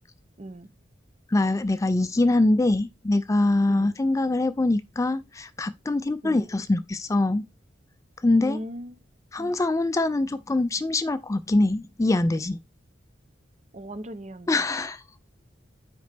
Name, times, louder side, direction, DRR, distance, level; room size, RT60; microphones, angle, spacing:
voice 1, 0.4-0.7 3.7-4.0 6.2-6.5 8.4-9.0 9.4-9.6 13.7-14.6, equal, 35° right, 0.7 m, -38 dB
voice 2, 1.3-7.4 8.2-8.6 9.3-12.6 14.5-15.0, left 2 dB, 15° left, 0.4 m, -23 dB
9.3 x 5.1 x 3.4 m
head